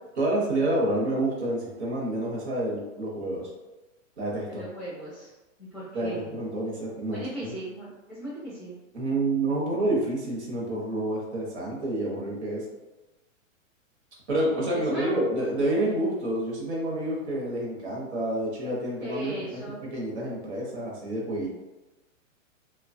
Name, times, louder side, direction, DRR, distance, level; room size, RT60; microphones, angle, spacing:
voice 1, 0.2-3.5 4.2-4.6 5.9-7.5 8.9-12.6 14.3-21.5, right 1 dB, 55° right, -3 dB, 0.9 m, -28 dB
voice 2, 4.5-6.4 7.1-8.8 14.7-15.2 19.0-19.8, right 1 dB, 5° right, -13 dB, 0.6 m, -38 dB
2.9 x 2.3 x 2.5 m, 1.1 s
hypercardioid pair, 175°, 40 cm